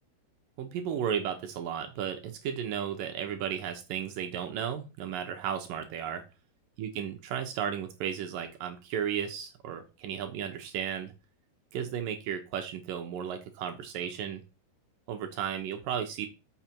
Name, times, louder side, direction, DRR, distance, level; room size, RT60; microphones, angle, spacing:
voice 1, 0.6-6.2 6.8-11.1 11.7-14.4 15.1-16.3, right 8 dB, 70° right, 6 dB, 2.3 m, -34 dB
7.2 x 6.0 x 4.5 m, 0.29 s
omnidirectional pair, 4.7 m